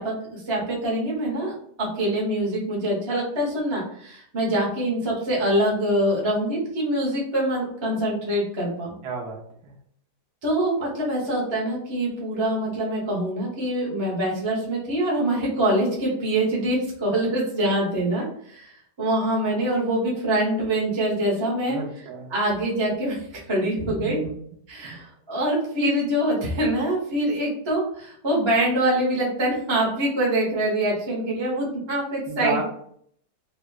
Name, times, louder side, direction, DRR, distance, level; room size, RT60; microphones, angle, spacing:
voice 1, 0.0-1.5 1.8-8.9 10.4-18.7 19.0-21.8 22.3-23.2 23.5-24.2 24.7-32.6, right 1 dB, 35° right, -3 dB, 0.4 m, -24 dB
voice 2, 9.0-9.7 21.7-22.3 23.8-24.4 24.8-25.1 32.3-32.6, right 4 dB, 75° right, -1 dB, 1.2 m, -32 dB
3.8 x 2.0 x 2.2 m, 0.64 s
omnidirectional pair, 1.9 m